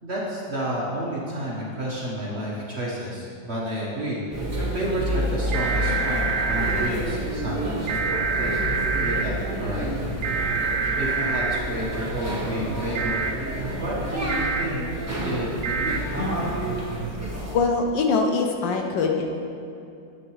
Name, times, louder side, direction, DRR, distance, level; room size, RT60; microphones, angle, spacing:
voice 1, 0.0-8.5 9.0-10.1 11.0-13.2 13.8-14.9 15.2-16.0, right 1 dB, 40° right, -5 dB, 1.3 m, -31 dB
sound 1, 4.3-17.6, right 1 dB, 10° right, 1.1 m, -29 dB
sound 2, 5.5-6.9 7.9-9.2 10.2-11.6 12.9-13.3 14.3-14.6 15.6-16.0, right 4 dB, 85° right, 0.6 m, -26 dB
voice 2, 17.5-19.4, left 4 dB, 70° left, 2 dB, 1.3 m, -23 dB
10.5 x 8.3 x 3.1 m, 2.7 s
omnidirectional pair, 2.2 m